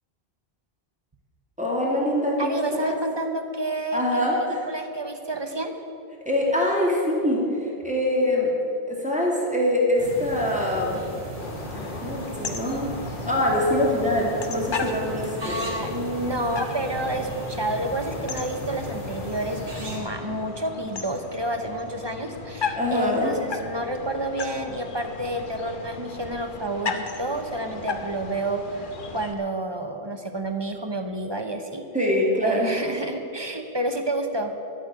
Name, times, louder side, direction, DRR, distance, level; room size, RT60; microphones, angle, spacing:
voice 1, 1.6-2.9 3.9-4.6 6.3-8.5 8.9-11.0 11.7-12.9 13.2-15.6 22.7-23.3 31.9-32.7, left 1 dB, 5° right, -4 dB, 2.3 m, -24 dB
voice 2, 2.4-5.7 15.4-31.8 32.4-34.5, right 1 dB, 25° right, 5 dB, 0.9 m, -30 dB
sound 1, 10.0-20.0, right 1 dB, 45° right, 2.9 m, -36 dB
sound 2, 11.4-29.3, left 4 dB, 55° left, 1.0 m, -36 dB
12.0 x 6.9 x 9.6 m, 2.6 s
omnidirectional pair, 1.0 m